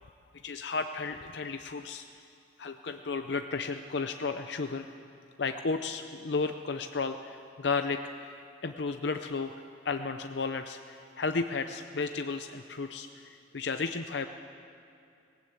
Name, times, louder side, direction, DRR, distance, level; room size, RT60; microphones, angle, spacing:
voice 1, 0.4-2.0 2.6-4.9 5.4-14.3, left 4 dB, 65° left, 7 dB, 0.6 m, -33 dB
18.5 x 18.5 x 7.9 m, 2.6 s
head